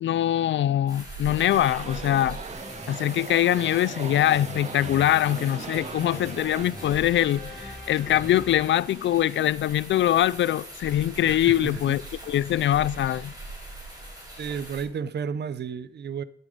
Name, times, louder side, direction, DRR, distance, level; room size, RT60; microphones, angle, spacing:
voice 1, 0.0-2.4 2.9-12.0 12.3-13.3, left 12 dB, 85° left, 0.4 m, -23 dB
sound 1, 0.9-14.8, right 1 dB, 20° right, 5.9 m, -42 dB
sound 2, 1.2-9.1, left 1 dB, 5° left, 6.1 m, -43 dB
sound 3, 1.5-6.6, right 6 dB, 40° right, 0.4 m, -39 dB
voice 2, 11.3-12.0 14.4-16.2, right 7 dB, 65° right, 0.7 m, -32 dB
15.5 x 7.5 x 5.0 m
wide cardioid pair, 120°, 19 cm